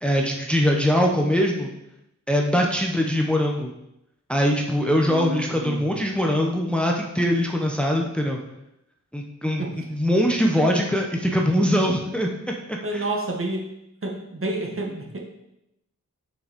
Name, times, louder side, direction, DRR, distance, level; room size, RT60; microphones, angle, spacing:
voice 1, 0.0-1.7 2.3-3.7 4.3-8.4 9.1-9.6 9.9-12.3 12.7-13.0, equal, 5° left, 1 dB, 0.8 m, -22 dB
voice 2, 4.8-6.1 9.6-9.8 12.8-13.7 14.0-15.2, right 1 dB, 45° right, 1 dB, 1.5 m, -30 dB
6.9 x 5.9 x 5.1 m, 0.85 s
wide cardioid pair, 110°, 31 cm